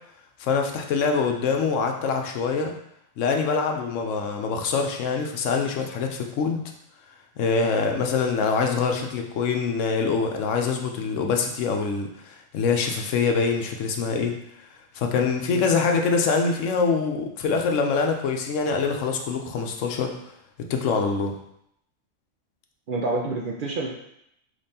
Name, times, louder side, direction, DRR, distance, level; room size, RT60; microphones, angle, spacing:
voice 1, 0.4-2.7 3.2-6.6 7.4-14.3 14.9-20.1 20.7-21.3, left 5 dB, 75° left, 3 dB, 1.0 m, -24 dB
voice 2, 22.9-24.0, right 2 dB, 55° right, -2 dB, 0.6 m, -28 dB
5.2 x 3.3 x 2.7 m, 0.75 s
omnidirectional pair, 1.3 m